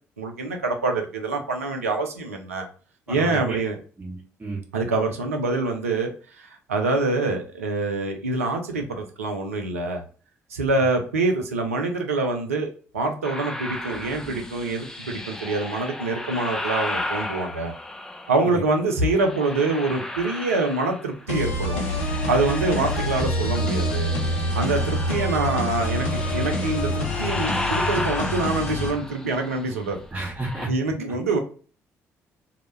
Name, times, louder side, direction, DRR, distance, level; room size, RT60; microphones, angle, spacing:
voice 1, 0.2-2.7 3.1-3.8 4.7-10.0 10.5-17.7 18.3-21.8 22.3-24.1 24.5-30.0 30.7-31.4, right 3 dB, 80° right, 4 dB, 0.4 m, -25 dB
voice 2, 3.1-3.6 4.0-4.6 18.4-18.6 22.7-22.9 24.8-24.9 30.1-30.7, right 2 dB, 20° right, -3 dB, 0.7 m, -32 dB
sound 1, 13.2-18.6 19.1-21.3 21.6-30.7, left 1 dB, 5° left, 0.3 m, -34 dB
sound 2, 21.3-28.9, left 1 dB, 75° left, 0.5 m, -26 dB
2.1 x 2.0 x 3.1 m, 0.38 s
figure-of-eight pair, 45°, 8 cm